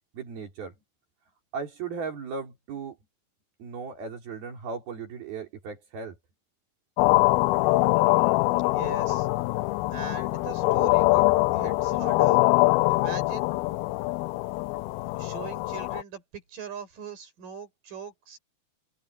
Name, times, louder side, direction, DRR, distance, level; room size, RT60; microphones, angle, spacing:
voice 1, 0.1-0.7 1.5-3.0 3.6-6.2, right 5 dB, 80° right, 5.9 m, -36 dB
sound 1, 7.0-16.0, left 21 dB, 85° left, 2.5 m, -23 dB
voice 2, 8.7-9.3 9.9-12.4 12.9-13.5 15.2-18.4, right 6 dB, 60° right, 7.3 m, -41 dB
open air
omnidirectional pair, 4.3 m